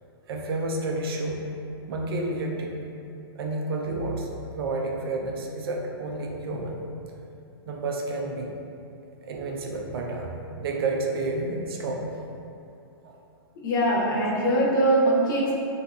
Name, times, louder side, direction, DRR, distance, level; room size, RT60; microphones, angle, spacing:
voice 1, 0.3-1.5 1.9-2.8 3.4-6.8 7.7-8.5 9.2-12.1 13.0-13.1 14.2-14.3, right 2 dB, 75° right, 0 dB, 0.4 m, -30 dB
voice 2, 13.6-15.5, right 1 dB, 55° left, -5 dB, 0.7 m, -22 dB
2.6 x 2.4 x 2.3 m, 2.6 s
hypercardioid pair, 150°, 13 cm